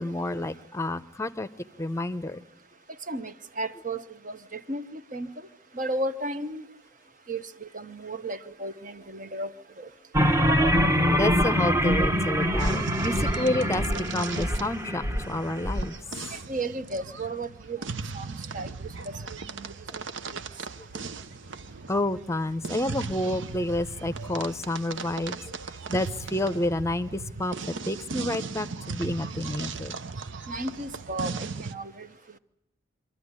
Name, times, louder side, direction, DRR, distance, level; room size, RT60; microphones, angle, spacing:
voice 1, 0.0-1.5 1.8-2.4 11.1-15.9 21.9-25.4 25.9-27.5 27.9-30.0, left 1 dB, 15° left, 14 dB, 0.8 m, -29 dB
voice 2, 3.1-5.3 5.7-6.6 7.3-9.9 16.5-18.7 19.1-20.0 20.3-20.4 30.5-32.1, right 2 dB, 40° right, 11 dB, 1.0 m, -34 dB
sound 1, 10.1-15.8, equal, 15° right, 1.0 m, -24 dB
sound 2, 12.6-31.7, right 4 dB, 70° right, 0.8 m, -37 dB
25.5 x 14.0 x 9.7 m, 0.89 s
head